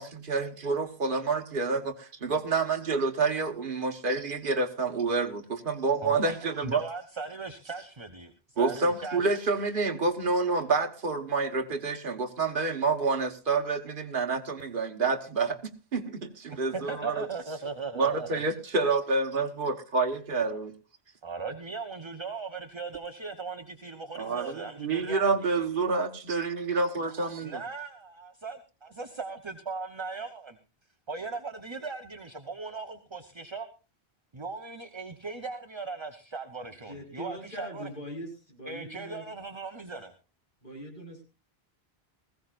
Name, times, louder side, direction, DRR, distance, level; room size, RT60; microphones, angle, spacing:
voice 1, 0.0-6.8 8.6-15.6 15.9-17.3 18.0-20.7 24.2-27.6, right 4 dB, 55° right, 4 dB, 1.5 m, -28 dB
voice 2, 6.0-9.5 16.7-18.4 21.2-25.7 27.4-30.6 31.1-33.7 34.3-37.9 38.6-40.1, right 4 dB, 30° right, 7 dB, 1.0 m, -39 dB
voice 3, 36.9-39.2 40.6-41.2, equal, 50° left, 1 dB, 4.7 m, -41 dB
20.5 x 15.5 x 2.5 m, 0.30 s
omnidirectional pair, 1.1 m